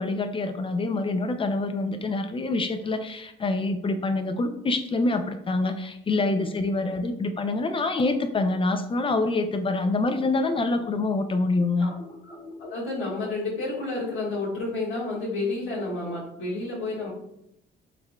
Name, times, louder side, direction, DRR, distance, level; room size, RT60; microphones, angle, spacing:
voice 1, 0.0-11.9, left 2 dB, 25° left, 7 dB, 0.4 m, -26 dB
voice 2, 11.8-17.1, left 2 dB, 90° left, -7 dB, 1.4 m, -31 dB
3.8 x 3.0 x 2.2 m, 0.78 s
cardioid pair, 90°, 20 cm